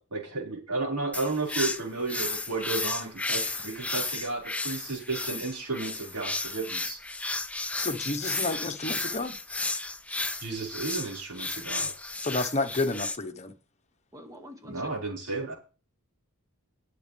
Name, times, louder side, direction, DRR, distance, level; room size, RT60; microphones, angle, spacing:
voice 1, 0.0-7.0 10.4-11.9 14.7-15.5, right 3 dB, 90° right, 5.3 m, -33 dB
sound 1, 1.1-13.2, left 3 dB, 5° left, 0.6 m, -33 dB
voice 2, 7.8-9.3 12.2-13.5, left 2 dB, 30° left, 1.2 m, -30 dB
voice 3, 14.1-14.9, equal, 15° right, 2.1 m, -47 dB
20.0 x 7.8 x 3.5 m
head